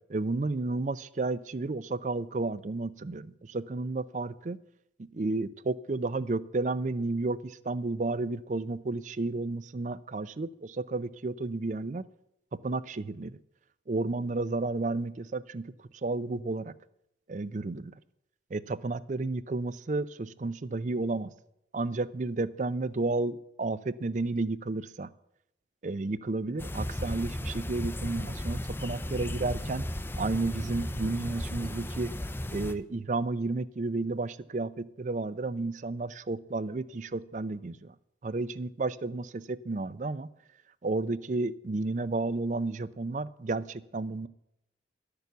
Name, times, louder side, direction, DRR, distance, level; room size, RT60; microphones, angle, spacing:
voice 1, 0.1-4.6 5.1-12.0 12.6-13.4 13.9-15.7 16.0-16.7 17.3-17.9 18.5-21.3 21.7-25.1 25.8-29.8 30.2-32.1 32.5-37.9 38.2-40.3 40.8-44.3, right 3 dB, 40° right, 17 dB, 0.4 m, -32 dB
sound 1, 26.6-32.7, left 1 dB, 10° left, 0.5 m, -35 dB
12.0 x 6.8 x 8.0 m, 0.83 s
head